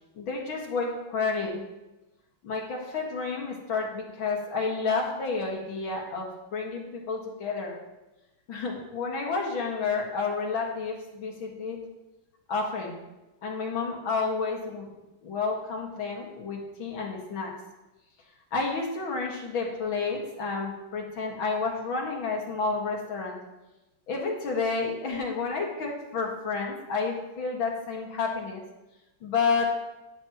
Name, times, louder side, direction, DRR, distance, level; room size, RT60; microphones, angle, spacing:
voice 1, 0.1-1.6 2.4-7.8 8.5-11.8 12.5-13.0 13.4-14.9 15.2-17.5 18.5-23.4 24.1-28.6 29.2-29.7, left 4 dB, 65° left, -1 dB, 2.5 m, -30 dB
14.0 x 7.4 x 2.9 m, 1.0 s
omnidirectional pair, 2.4 m